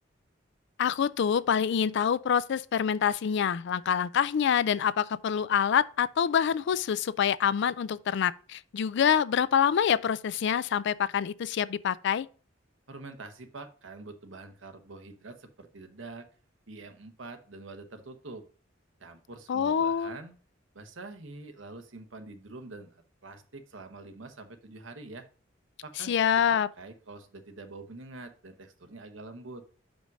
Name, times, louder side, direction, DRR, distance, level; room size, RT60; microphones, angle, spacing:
voice 1, 0.8-12.3 19.5-20.2 26.1-26.7, left 8 dB, 60° left, 0.4 m, -26 dB
voice 2, 12.9-16.2 16.7-18.4 19.0-20.4 20.7-25.3 25.8-26.1 26.5-29.6, right 3 dB, 75° right, 1.1 m, -45 dB
5.4 x 5.1 x 6.0 m
head